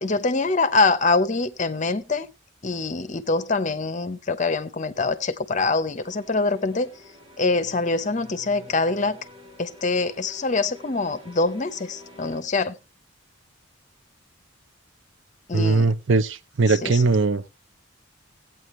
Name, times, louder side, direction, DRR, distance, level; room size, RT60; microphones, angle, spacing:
voice 1, 0.0-2.3 2.6-6.9 7.4-9.2 9.6-12.8 15.5-15.9 16.7-17.0, left 3 dB, 35° left, 0.8 m, -24 dB
sound 1, 6.0-12.4, left 1 dB, 25° right, 3.4 m, -48 dB
voice 2, 15.5-17.4, right 3 dB, 70° right, 0.6 m, -20 dB
15.5 x 9.0 x 3.1 m
head